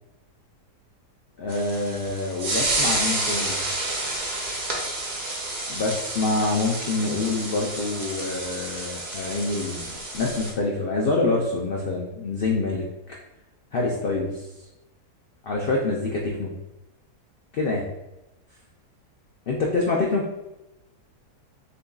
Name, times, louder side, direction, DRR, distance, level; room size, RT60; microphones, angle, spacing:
voice 1, 1.4-3.6 5.7-13.1 13.7-14.5 15.4-16.5 17.5-17.9 19.5-20.2, left 3 dB, 90° left, -2 dB, 0.5 m, -26 dB
sound 1, 1.5-10.5, right 2 dB, 40° right, 0.7 m, -29 dB
6.7 x 2.5 x 2.3 m, 0.97 s
omnidirectional pair, 1.7 m